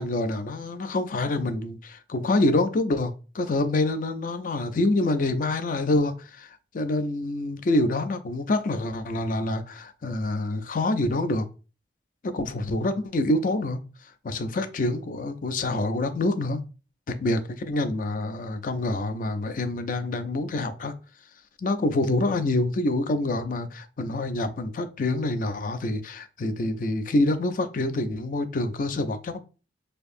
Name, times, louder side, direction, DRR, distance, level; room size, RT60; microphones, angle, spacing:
voice 1, 0.0-6.5 6.7-11.5 12.2-13.8 14.2-16.6 17.1-20.9 21.6-29.4, left 2 dB, 50° left, 0.4 m, -26 dB
4.5 x 2.6 x 2.5 m
head